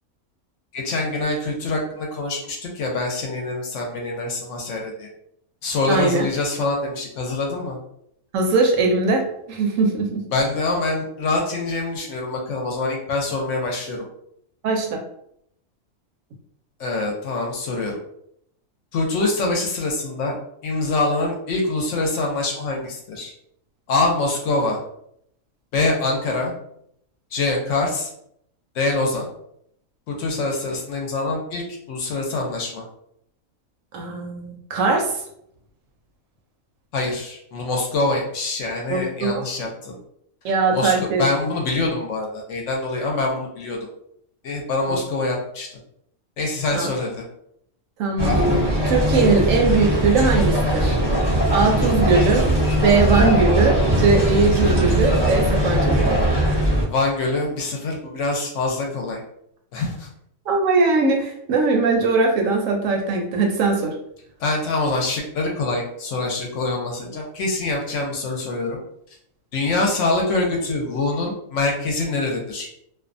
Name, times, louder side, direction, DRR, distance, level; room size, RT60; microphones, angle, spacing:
voice 1, 0.7-5.1 5.6-7.8 10.3-14.0 16.8-18.0 18.9-20.4 20.6-23.3 23.9-24.8 25.7-26.5 27.3-28.1 28.7-29.3 30.1-31.6 31.9-32.8 36.9-40.0 40.7-43.8 44.4-45.7 46.4-47.2 52.1-52.3 56.9-59.2 59.7-60.1 64.4-68.8 69.5-72.7, left 2 dB, 65° left, 0 dB, 0.8 m, -24 dB
voice 2, 5.9-6.3 8.3-10.2 14.6-15.0 33.9-35.1 38.9-39.4 40.4-41.2 44.9-45.0 46.7-46.9 48.0-48.4 48.9-51.0 51.5-52.4 52.8-56.2 60.5-63.9, right 4 dB, 70° right, 2 dB, 0.9 m, -20 dB
sound 1, 48.2-56.8, right 1 dB, 30° right, 0.5 m, -20 dB
2.5 x 2.1 x 2.5 m, 0.72 s
omnidirectional pair, 1.5 m